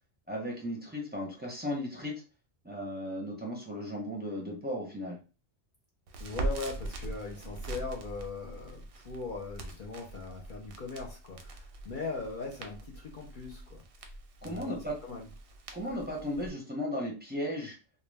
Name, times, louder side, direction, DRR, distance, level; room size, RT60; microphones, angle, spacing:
voice 1, 0.3-2.1 2.6-5.2 14.4-14.9 15.7-17.8, equal, 10° right, -2 dB, 0.6 m, -35 dB
Crackle, 6.1-16.5, right 2 dB, 60° right, 0.7 m, -42 dB
voice 2, 6.2-13.8 14.4-15.3, left 3 dB, 55° left, -1 dB, 0.6 m, -40 dB
2.3 x 2.1 x 3.3 m, 0.33 s
omnidirectional pair, 1.2 m